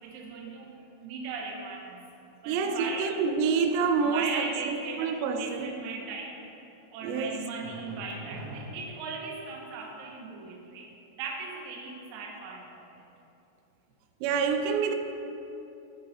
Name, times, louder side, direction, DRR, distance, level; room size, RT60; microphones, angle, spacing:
voice 1, 0.0-0.8 1.0-2.0 2.4-3.1 4.0-6.4 6.9-10.9 11.2-12.9, right 4 dB, 70° right, -2 dB, 2.4 m, -38 dB
voice 2, 2.5-5.7 7.0-7.5 14.2-15.0, right 5 dB, 90° right, 6 dB, 3.2 m, -27 dB
15.5 x 5.4 x 4.1 m, 2.9 s
omnidirectional pair, 5.5 m